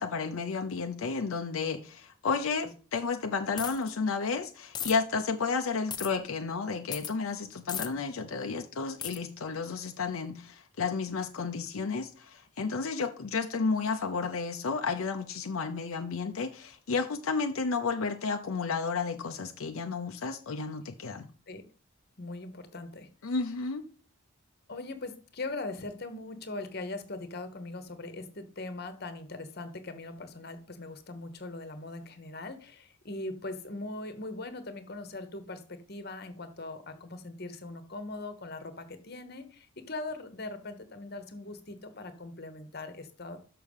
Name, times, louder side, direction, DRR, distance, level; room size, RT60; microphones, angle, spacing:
voice 1, 0.0-21.3 23.2-23.9, left 4 dB, 80° left, 5 dB, 0.6 m, -32 dB
sound 1, 3.6-3.9 4.7-4.9 5.9-6.1 6.9-7.1 7.7-7.9 9.0-9.2, left 8 dB, 20° left, 0.4 m, -35 dB
voice 2, 22.2-23.1 24.7-43.4, left 2 dB, 45° left, 9 dB, 1.1 m, -40 dB
6.5 x 5.8 x 5.4 m, 0.39 s
head